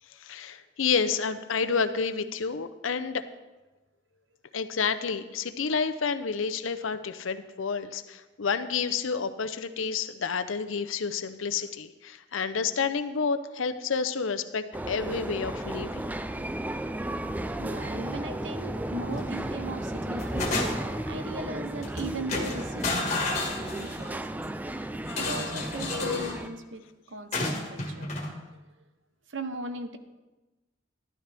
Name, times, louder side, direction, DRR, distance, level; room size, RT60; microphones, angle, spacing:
voice 1, 0.2-3.2 4.5-16.1, left 5 dB, 90° left, 10 dB, 0.7 m, -29 dB
sound 1, 14.7-26.5, right 1 dB, 10° right, 0.3 m, -34 dB
voice 2, 17.6-20.5 21.1-24.4 25.1-28.1 28.5-28.6 29.3-30.0, right 2 dB, 70° right, 8 dB, 0.9 m, -38 dB
sound 2, 19.1-19.5 19.9-21.0 21.8-22.0 22.3-24.1 25.1-26.4 27.3-28.3, left 2 dB, 35° left, 1.7 m, -31 dB
12.5 x 11.5 x 3.4 m, 1.1 s
head